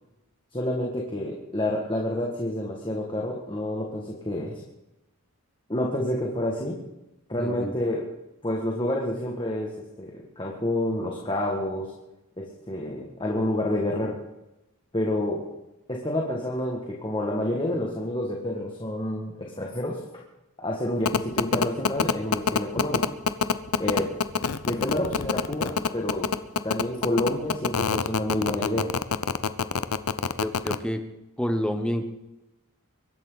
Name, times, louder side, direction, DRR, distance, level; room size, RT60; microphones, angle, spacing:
voice 1, 0.5-4.6 5.7-6.8 7.3-8.1 8.4-11.9 12.4-14.2 14.9-15.5 15.9-20.0 20.6-23.1 23.8-24.2 24.7-26.3 26.6-28.9, left 1 dB, 20° left, -1 dB, 1.9 m, -29 dB
voice 2, 7.4-7.7 30.4-31.0 31.4-32.0, equal, 5° left, 7 dB, 0.9 m, -28 dB
sound 1, 21.0-30.7, left 5 dB, 85° left, 0.8 m, -24 dB
23.5 x 12.5 x 4.0 m, 0.94 s
head